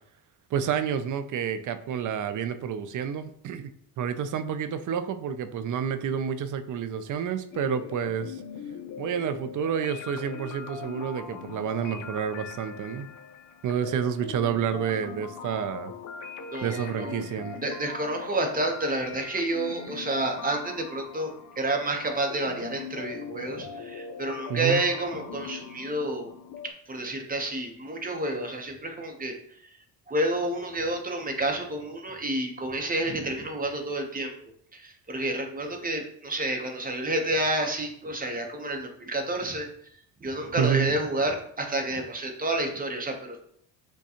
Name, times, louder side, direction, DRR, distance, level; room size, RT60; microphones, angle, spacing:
voice 1, 0.5-8.4 9.0-13.1 13.6-15.9 16.6-17.6 24.5-24.8 40.6-40.9, right 8 dB, 45° right, 11 dB, 0.4 m, -29 dB
sound 1, 7.5-26.7, left 6 dB, 45° left, 0.5 m, -41 dB
voice 2, 16.4-17.2 17.6-26.3 26.6-29.6 30.1-34.3 34.7-39.7 40.2-43.4, right 1 dB, 20° right, 3 dB, 0.8 m, -30 dB
6.0 x 2.3 x 2.8 m, 0.68 s
cardioid pair, 95°, 45 cm